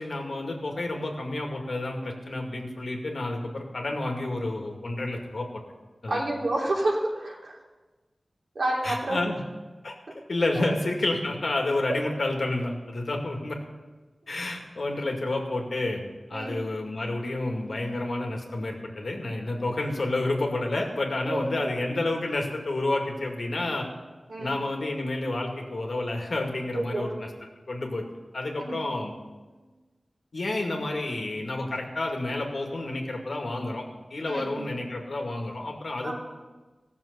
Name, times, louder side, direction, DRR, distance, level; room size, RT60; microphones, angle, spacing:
voice 1, 0.0-5.5 6.0-6.2 8.8-9.4 9.8-9.9 10.3-13.6 14.3-16.0 16.3-23.9 24.4-27.3 27.7-28.0 28.3-29.1 30.3-33.8 34.1-36.2, left 2 dB, 65° left, 1 dB, 2.1 m, -30 dB
voice 2, 6.1-7.6 8.5-9.2 16.3-16.5 21.3-21.7 24.3-24.5 26.7-27.1 28.6-28.8 29.5-29.6 34.3-34.6 36.0-36.2, right 1 dB, 70° right, -3 dB, 3.2 m, -29 dB
16.5 x 6.9 x 6.7 m, 1.3 s
wide cardioid pair, 90°, 0 cm